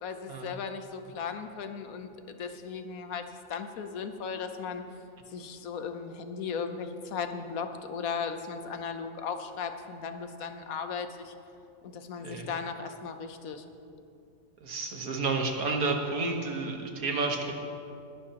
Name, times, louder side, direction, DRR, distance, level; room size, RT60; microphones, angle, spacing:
voice 1, 0.0-4.8 5.3-11.3 11.8-13.6, left 6 dB, 80° left, 7 dB, 1.2 m, -37 dB
voice 2, 14.6-17.5, right 3 dB, 80° right, 2 dB, 1.7 m, -30 dB
20.0 x 11.0 x 2.9 m, 2.6 s
omnidirectional pair, 1.5 m